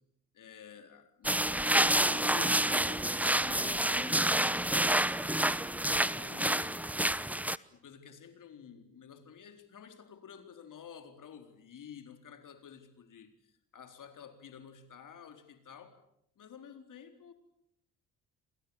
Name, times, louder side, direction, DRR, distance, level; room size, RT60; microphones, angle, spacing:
voice 1, 0.3-7.2 7.7-16.0 16.4-17.3, left 7 dB, 55° left, 7 dB, 4.1 m, -51 dB
sound 1, 1.2-7.6, right 1 dB, 5° right, 1.0 m, -28 dB
28.5 x 26.5 x 7.2 m, 0.75 s
hypercardioid pair, 50°, 38 cm